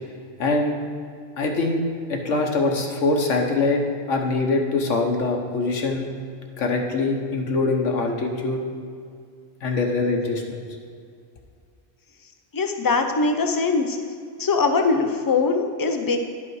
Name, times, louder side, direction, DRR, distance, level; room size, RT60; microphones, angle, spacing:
voice 1, 0.4-0.8 1.4-1.8 2.1-6.1 6.6-8.6 9.6-10.6, left 3 dB, 75° left, 2 dB, 1.3 m, -23 dB
voice 2, 12.5-14.0 14.4-16.2, left 4 dB, 30° left, 5 dB, 0.3 m, -21 dB
11.0 x 5.5 x 4.7 m, 2.3 s
omnidirectional pair, 1.3 m